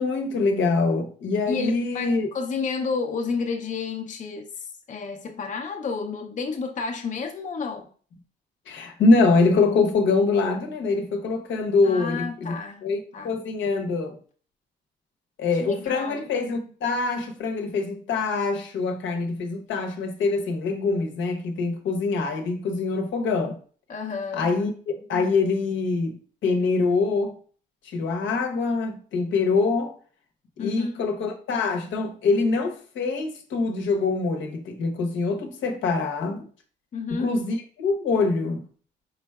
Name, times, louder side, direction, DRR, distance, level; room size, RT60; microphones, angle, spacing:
voice 1, 0.0-2.3 8.7-14.2 15.4-23.6 24.3-27.4 27.8-29.9 30.6-36.5 37.1-38.6, left 3 dB, 75° left, 0.8 m, -24 dB
voice 2, 1.5-7.9 11.8-12.9 13.1-13.3 15.6-16.2 23.9-24.5 30.6-31.0 36.9-37.3, left 5 dB, 40° left, 0.6 m, -31 dB
4.4 x 3.9 x 2.3 m
cardioid pair, 90°, 20 cm